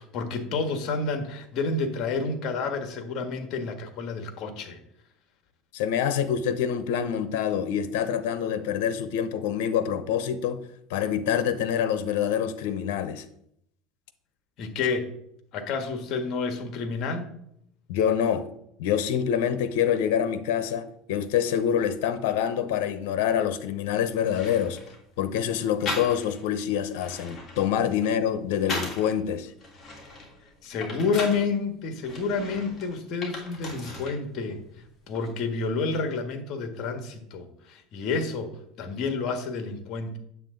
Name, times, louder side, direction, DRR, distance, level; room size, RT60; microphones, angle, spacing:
voice 1, 0.0-4.8 14.6-15.1 15.5-17.3 30.6-34.6 35.1-38.5 38.8-40.2, left 4 dB, 50° left, 1.5 m, -29 dB
voice 2, 5.7-10.6 10.9-13.2 17.9-18.5 18.8-24.8 25.2-29.5, left 9 dB, 80° left, 0.8 m, -26 dB
sound 1, 24.3-25.0 25.9-26.5 26.8-29.1 29.6-31.5 32.0-34.2 34.5-35.3, left 2 dB, 25° left, 3.1 m, -37 dB
8.9 x 7.7 x 3.9 m
supercardioid pair, 130°, 0 cm